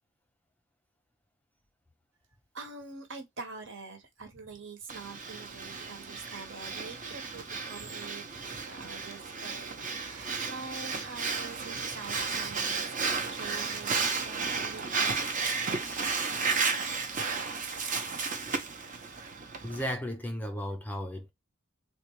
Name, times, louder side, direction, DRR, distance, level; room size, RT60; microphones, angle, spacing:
voice 1, 2.5-15.6, right 4 dB, 55° right, 1.1 m, -45 dB
Breathing, 4.9-19.9, right 4 dB, 35° right, 0.7 m, -33 dB
voice 2, 19.6-21.3, equal, 5° left, 0.4 m, -35 dB
3.9 x 2.2 x 3.0 m
head